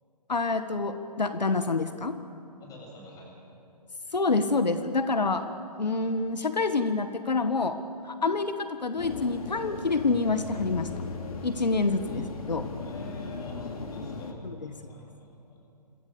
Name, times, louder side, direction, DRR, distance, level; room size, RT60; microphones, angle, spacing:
voice 1, 0.3-2.2 4.1-5.5 5.8-10.9 11.4-12.7 14.4-14.5, left 3 dB, 85° left, 9 dB, 1.6 m, -27 dB
voice 2, 2.6-3.4 12.1-12.2 12.8-15.6, left 1 dB, 15° left, 0 dB, 7.5 m, -48 dB
sound 1, 9.0-14.3, left 4 dB, 55° left, 3.0 m, -37 dB
27.5 x 27.5 x 7.0 m, 2.6 s
figure-of-eight pair, 135°, 21 cm